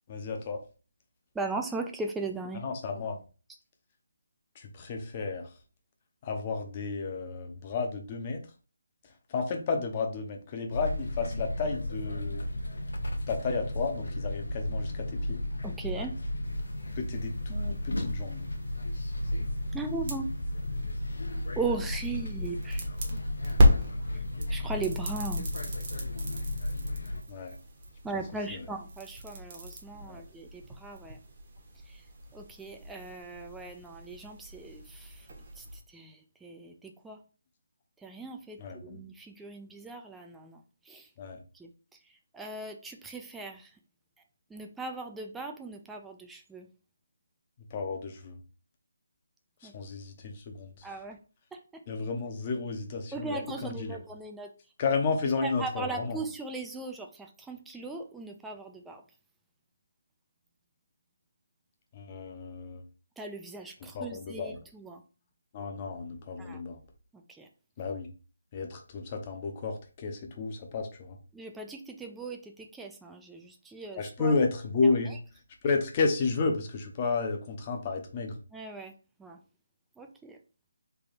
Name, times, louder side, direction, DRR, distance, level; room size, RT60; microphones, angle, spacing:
voice 1, 0.1-0.6 2.6-3.2 4.6-5.5 6.2-8.4 9.3-12.5 13.3-15.4 17.0-18.4 27.3-27.6 28.5-28.6 30.1-30.2 38.6-39.0 41.2-41.4 47.7-48.4 49.6-50.9 51.9-54.0 54.8-56.2 61.9-62.8 63.9-64.6 65.5-66.8 67.8-68.1 68.5-71.2 74.0-75.2 75.6-78.4, left 4 dB, 30° left, 4 dB, 0.7 m, -32 dB
voice 2, 1.3-2.6 15.6-16.1 19.7-20.3 21.6-22.9 24.5-25.5 28.0-31.2 31.9-32.0 32.3-35.3 35.6-37.2 38.0-41.1 41.5-41.7 42.3-43.7 44.5-46.7 49.6-49.7 50.8-51.2 51.5-51.8 53.1-54.5 55.4-59.0 63.2-65.0 66.4-66.6 67.1-67.5 71.3-74.3 74.8-75.2 78.5-78.9 79.2-79.4 80.0-80.4, right 3 dB, 5° right, 3 dB, 0.3 m, -38 dB
sound 1, 10.7-27.2, left 1 dB, 75° left, 0.7 m, -34 dB
sound 2, 16.4-35.8, equal, 35° right, 1.0 m, -34 dB
3.4 x 2.2 x 4.0 m, 0.35 s
figure-of-eight pair, 160°, 0 cm